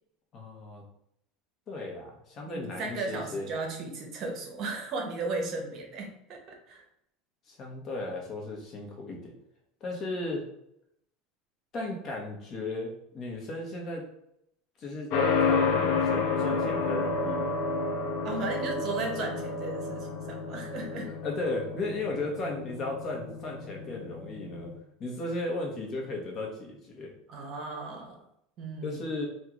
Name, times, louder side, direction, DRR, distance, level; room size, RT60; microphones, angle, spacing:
voice 1, 0.3-0.8 1.7-3.5 7.5-9.3 9.8-10.4 11.7-14.0 14.8-15.1 15.4-17.6 21.0-24.7 25.0-27.1 28.8-29.3, left 2 dB, 35° left, 0 dB, 1.0 m, -35 dB
voice 2, 2.5-6.8 18.2-21.1 27.3-28.2 28.6-29.0, right 3 dB, 45° right, 2 dB, 0.8 m, -35 dB
sound 1, 15.1-24.8, left 4 dB, 60° left, 0.6 m, -30 dB
3.6 x 2.4 x 3.0 m, 0.76 s
supercardioid pair, 135°, 0 cm